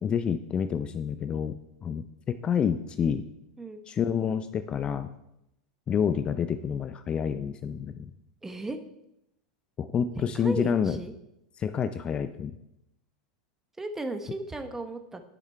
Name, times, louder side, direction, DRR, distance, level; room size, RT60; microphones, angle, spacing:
voice 1, 0.0-3.2 3.9-5.1 5.9-8.1 9.8-11.0 11.6-12.5, left 7 dB, 30° left, 11 dB, 0.5 m, -28 dB
voice 2, 8.4-8.8 10.1-11.1 13.8-15.2, right 2 dB, 10° right, 8 dB, 1.1 m, -35 dB
10.5 x 6.6 x 4.5 m, 0.83 s
hypercardioid pair, 100°, 3 cm